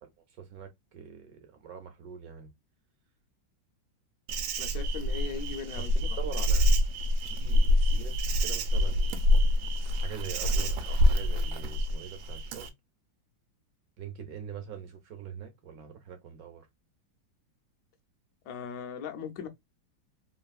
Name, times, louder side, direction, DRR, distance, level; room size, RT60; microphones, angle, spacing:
voice 1, 0.0-2.5 5.7-6.8 7.3-9.2 10.0-12.7 14.0-16.7, right 8 dB, 70° right, 0.9 m, -43 dB
Insect, 4.3-12.7, left 1 dB, 85° right, 1.4 m, -26 dB
voice 2, 4.6-5.9 18.5-19.5, left 6 dB, 70° left, 0.8 m, -38 dB
3.3 x 2.6 x 2.3 m
omnidirectional pair, 2.1 m